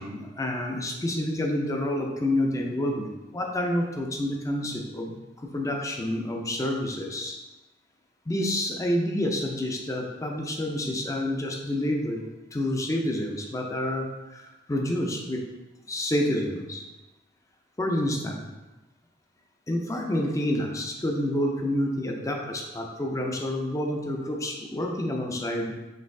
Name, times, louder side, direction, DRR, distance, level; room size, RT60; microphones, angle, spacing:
voice 1, 0.0-7.4 8.3-12.3 12.5-15.4 15.9-16.8 17.8-18.5 19.7-25.8, left 1 dB, 15° left, 1 dB, 0.4 m, -28 dB
5.2 x 3.0 x 2.6 m, 1.1 s
head